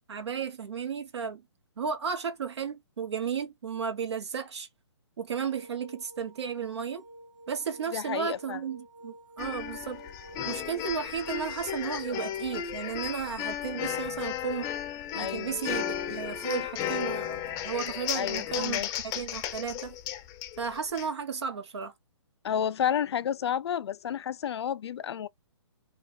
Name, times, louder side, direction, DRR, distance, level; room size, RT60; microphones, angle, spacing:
voice 1, 0.1-1.4 1.8-4.7 5.2-7.0 7.5-10.0 10.4-14.7 15.1-20.0 20.6-21.9, right 6 dB, 70° right, 1.2 m, -34 dB
sound 1, 5.5-12.6, right 1 dB, 45° right, 1.3 m, -50 dB
voice 2, 7.9-8.6 15.2-15.6 18.1-18.9 22.4-25.3, left 9 dB, 65° left, 0.4 m, -31 dB
sound 2, 9.4-21.1, left 10 dB, 25° left, 0.6 m, -34 dB
4.5 x 2.4 x 4.0 m
hypercardioid pair, 135°, 15 cm